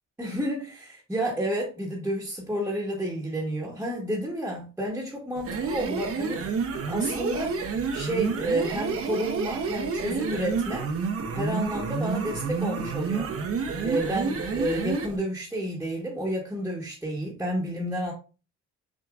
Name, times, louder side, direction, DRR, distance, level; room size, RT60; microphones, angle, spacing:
voice 1, 0.2-6.5 6.9-7.6 7.9-10.9 11.3-13.3 13.8-18.1, right 1 dB, 5° right, 1.2 m, -30 dB
sound 1, 5.4-15.2, right 5 dB, 45° right, 0.8 m, -29 dB
6.0 x 2.9 x 2.4 m
cardioid pair, 105°, 32 cm